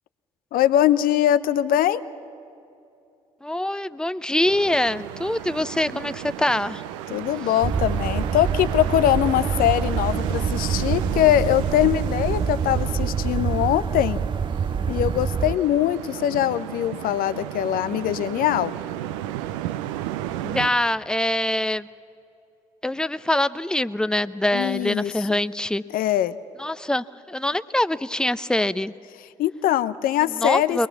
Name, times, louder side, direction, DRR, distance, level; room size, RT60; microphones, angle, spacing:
voice 1, 0.5-2.0 7.1-14.2 14.9-18.7 24.5-25.4 25.9-26.3 29.4-30.9, left 12 dB, 65° left, 14 dB, 0.7 m, -22 dB
voice 2, 3.4-6.8 20.4-21.9 22.8-25.8 26.6-28.9 30.3-30.9, left 1 dB, 5° left, 15 dB, 0.7 m, -24 dB
sound 1, 4.4-20.7, right 12 dB, 85° right, 0.6 m, -33 dB
sound 2, 7.6-15.5, right 6 dB, 30° right, 0.5 m, -26 dB
23.0 x 19.5 x 7.1 m, 2.7 s
hypercardioid pair, 45°, 16 cm